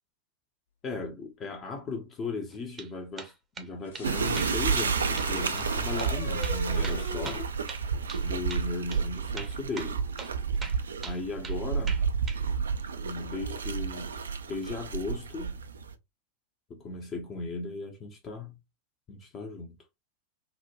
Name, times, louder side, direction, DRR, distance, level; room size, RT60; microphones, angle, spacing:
voice 1, 0.8-7.4 8.2-10.0 11.0-12.0 13.0-14.1 14.5-15.6 16.7-18.6 19.1-19.8, left 3 dB, 30° left, 0.6 m, -37 dB
sound 1, 2.5-2.9 3.2-3.7 3.9-4.1 4.4-4.9 5.2-5.3 5.6-5.7 6.0-6.1 6.4-8.2 8.5-8.7 8.9-9.0 9.4-9.9 10.2-10.3 10.6-11.6 11.9-12.4, right 4 dB, 20° right, 0.6 m, -42 dB
sound 2, 3.9-7.4, left 4 dB, 65° left, 0.8 m, -40 dB
sound 3, 4.0-15.9, right 6 dB, 70° right, 0.3 m, -30 dB
3.0 x 2.1 x 2.5 m
figure-of-eight pair, 90°, 0 cm